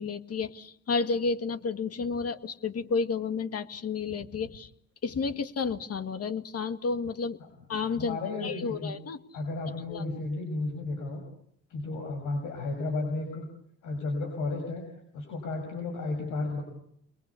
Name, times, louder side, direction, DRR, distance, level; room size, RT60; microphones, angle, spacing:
voice 1, 0.0-4.7 5.0-7.4 7.7-9.2 9.9-10.0, left 4 dB, 50° left, 10 dB, 2.1 m, -31 dB
voice 2, 8.0-8.9 9.3-11.2 11.7-13.5 13.8-14.8 15.1-16.6, left 2 dB, 85° left, 3 dB, 6.7 m, -33 dB
30.0 x 22.0 x 8.4 m, 0.69 s
cardioid pair, 90°, 30 cm